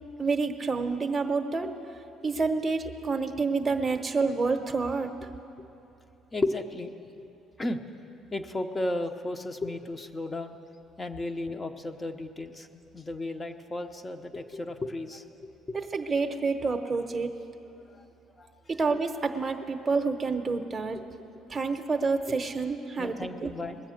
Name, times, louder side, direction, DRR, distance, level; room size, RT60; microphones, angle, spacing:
voice 1, 0.2-1.7 2.2-5.2 15.7-17.3 18.7-21.0 21.5-23.5, right 4 dB, 25° right, 5 dB, 0.9 m, -28 dB
voice 2, 6.3-7.2 7.6-7.8 8.3-10.6 11.0-12.7 12.9-15.8 17.9-18.1 18.4-18.5 23.0-23.8, left 2 dB, 25° left, 7 dB, 0.8 m, -34 dB
20.5 x 7.5 x 6.4 m, 2.8 s
cardioid pair, 90°, 0 cm